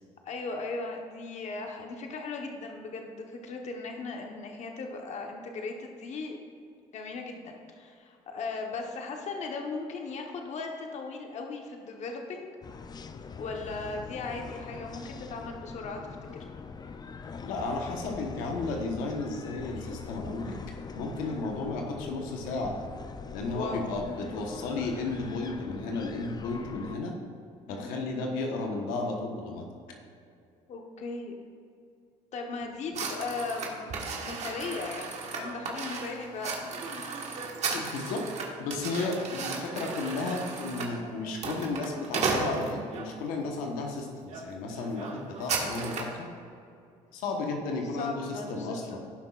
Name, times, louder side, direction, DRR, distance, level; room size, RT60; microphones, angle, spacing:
voice 1, 0.3-6.4 6.9-12.5 13.4-16.0 16.3-16.4 21.2-21.4 23.3-23.9 24.2-24.3 27.7-27.9 30.7-31.3 32.3-36.6 36.9-37.1 44.7-45.1 47.9-49.0, left 3 dB, 55° left, 2 dB, 1.1 m, -38 dB
sound 1, 12.6-27.0, left 5 dB, 30° left, 0.5 m, -43 dB
voice 2, 17.4-20.5 20.9-22.7 23.3-27.1 27.7-29.6 37.7-38.2 38.6-46.3 47.1-49.0, left 3 dB, 85° left, 1 dB, 1.2 m, -33 dB
sound 2, 32.9-43.1 43.7-43.9 44.3-44.4 44.7-46.2, right 4 dB, 55° right, 1.6 m, -35 dB
16.5 x 5.8 x 2.5 m, 2.5 s
supercardioid pair, 85°, 14 cm